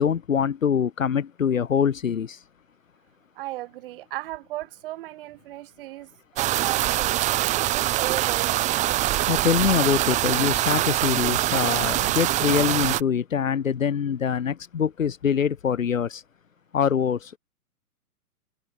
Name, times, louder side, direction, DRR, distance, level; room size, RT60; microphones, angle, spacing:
voice 1, 0.0-2.4 9.3-16.2 16.7-17.4, left 7 dB, 60° left, 1.5 m, -24 dB
voice 2, 3.4-7.2 7.7-8.7, right 17 dB, 35° right, 4.8 m, -36 dB
sound 1, 6.4-13.0, right 16 dB, 15° right, 1.3 m, -24 dB
figure-of-eight pair, 120°, 45 cm